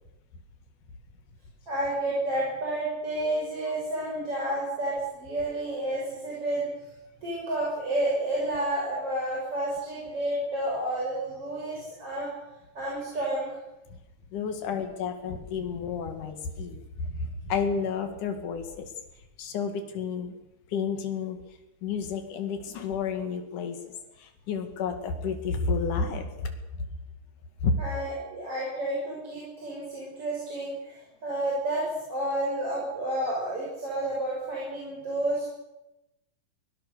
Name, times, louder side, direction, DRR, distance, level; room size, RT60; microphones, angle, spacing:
voice 1, 1.7-6.6 7.2-12.3 12.7-13.5 27.8-35.5, right 1 dB, 40° right, -5 dB, 6.7 m, -30 dB
voice 2, 14.3-18.9 19.4-20.4 20.7-21.4 21.8-26.9 27.6-27.8, left 5 dB, 70° left, 6 dB, 3.6 m, -31 dB
22.5 x 17.5 x 6.8 m, 0.95 s
omnidirectional pair, 3.9 m